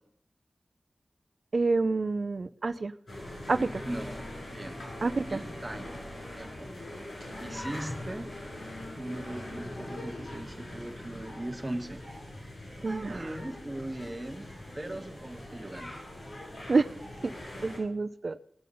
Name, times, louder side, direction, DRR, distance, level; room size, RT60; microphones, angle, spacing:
voice 1, 1.5-2.9 3.5-3.8 5.0-5.4 12.8-13.3 16.7-16.9 17.2-17.3 17.6-18.4, right 3 dB, 65° right, 13 dB, 0.6 m, -28 dB
sound 1, 3.1-17.8, left 1 dB, 75° left, 6.9 m, -42 dB
sound 2, 3.9-10.3, left 2 dB, 60° left, 2.2 m, -54 dB
voice 2, 3.9-4.2 4.5-4.8 5.3-5.9 6.3-6.7 7.4-8.3 9.0-12.0 12.8-14.5 14.7-15.9, right 1 dB, 25° right, 5 dB, 1.4 m, -39 dB
19.0 x 7.7 x 5.4 m, 0.69 s
wide cardioid pair, 80°, 0 cm